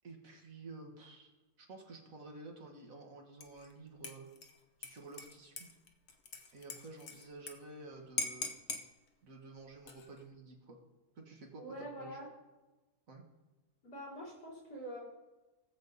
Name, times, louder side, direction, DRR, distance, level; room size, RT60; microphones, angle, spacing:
voice 1, 0.0-1.3 1.6-4.3 4.8-5.7 6.5-8.5 9.2-10.8 11.2-12.2 13.1-13.2, right 3 dB, 60° right, 1 dB, 2.0 m, -51 dB
Dishes pots and pans / Liquid, 3.4-3.7 4.0-7.5 7.8-7.9 8.2-8.8 9.7-10.2, left 3 dB, 50° left, 1.1 m, -42 dB
voice 2, 11.6-12.3 13.8-15.0, equal, 85° left, -5 dB, 4.5 m, -45 dB
18.0 x 7.4 x 4.0 m, 1.1 s
omnidirectional pair, 1.6 m